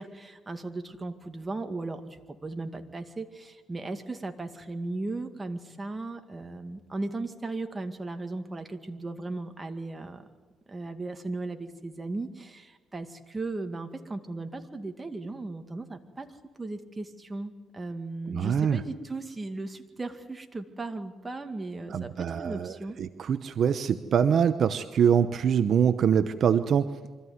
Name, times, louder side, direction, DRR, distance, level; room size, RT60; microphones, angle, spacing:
voice 1, 0.0-10.2 10.7-16.3 16.6-23.0, right 2 dB, 20° right, 6 dB, 2.1 m, -37 dB
voice 2, 18.3-18.8 21.9-22.7 23.0-26.9, right 8 dB, 60° right, 11 dB, 0.8 m, -24 dB
25.0 x 14.5 x 9.5 m, 1.4 s
cardioid pair, 90°, 0 cm